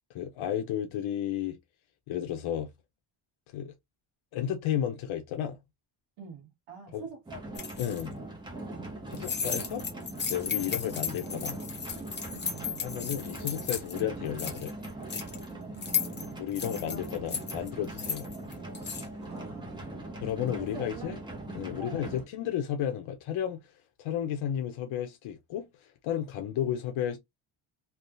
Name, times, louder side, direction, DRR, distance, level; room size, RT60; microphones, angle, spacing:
voice 1, 0.1-1.6 2.1-2.7 3.5-3.7 4.3-5.6 6.9-7.0 7.8-8.1 9.2-9.9 10.2-11.6 12.8-14.7 16.4-18.3 20.2-21.2 21.6-23.6 24.0-27.2, left 10 dB, 75° left, 0.7 m, -33 dB
voice 2, 6.2-7.4 8.6-8.9 12.3-12.9 15.7-16.4 16.9-17.3 19.2-20.2 20.5-21.2 21.8-22.1, right 4 dB, 80° right, 1.3 m, -45 dB
sound 1, 7.3-22.2, right 2 dB, 10° right, 0.7 m, -41 dB
sound 2, 7.5-8.0 9.1-14.0 14.3-15.4 15.8-19.1, left 6 dB, 20° left, 0.6 m, -35 dB
3.5 x 2.3 x 2.4 m
cardioid pair, 175°, 49 cm